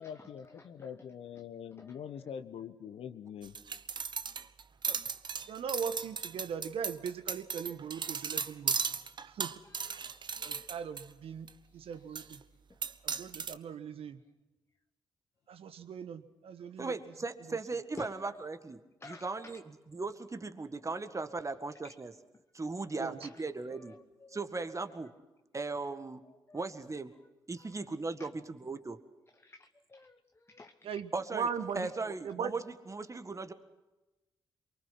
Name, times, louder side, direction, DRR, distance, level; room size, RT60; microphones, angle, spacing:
voice 1, 0.0-3.5, left 8 dB, 65° left, 11 dB, 1.3 m, -44 dB
voice 2, 0.6-0.9 1.8-1.9 9.6-10.1 10.5-10.6 18.0-18.1 19.0-19.5 24.2-24.4 26.5-26.6 29.4-30.1 30.5-30.7, left 3 dB, 25° left, 7 dB, 1.1 m, -51 dB
sound 1, 3.4-11.0 11.5-11.6 12.2-12.4 12.8-13.5, right 6 dB, 45° right, 1.0 m, -36 dB
voice 3, 5.5-8.7 9.4-9.5 10.4-11.5 11.7-12.4 13.0-14.2 15.5-16.9 23.0-23.2 30.8-31.9 32.2-32.5, right 7 dB, 65° right, 11 dB, 1.4 m, -39 dB
voice 4, 16.8-22.1 22.5-24.0 24.3-25.1 25.5-26.2 26.5-27.1 27.5-29.0 31.1-31.5 31.7-33.5, right 3 dB, 30° right, 10 dB, 1.8 m, -38 dB
24.0 x 23.5 x 5.9 m, 1.1 s
hypercardioid pair, 40°, 11 cm